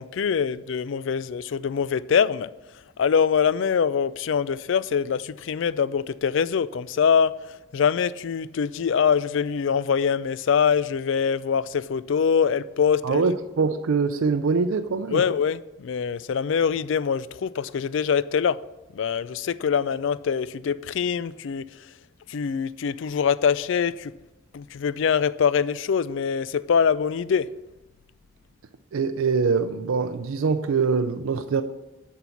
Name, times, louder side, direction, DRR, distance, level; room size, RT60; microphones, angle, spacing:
voice 1, 0.0-2.5 3.0-13.3 15.1-18.6 18.9-21.7 22.3-24.1 24.5-27.5, left 7 dB, 65° left, 0.3 m, -24 dB
voice 2, 13.0-15.2 28.9-31.6, right 5 dB, 80° right, 0.4 m, -23 dB
11.0 x 4.6 x 7.0 m
head